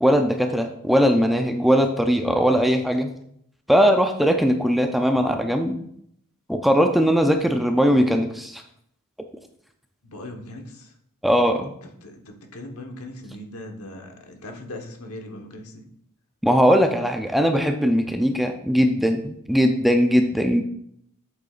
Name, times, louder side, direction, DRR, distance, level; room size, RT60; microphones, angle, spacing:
voice 1, 0.0-3.1 3.7-5.8 6.5-8.6 11.2-11.7 16.4-20.6, equal, ahead, 5 dB, 0.4 m, -20 dB
voice 2, 10.0-10.9 12.0-15.9, left 1 dB, 75° left, 3 dB, 1.1 m, -39 dB
7.9 x 6.5 x 2.4 m, 0.71 s
head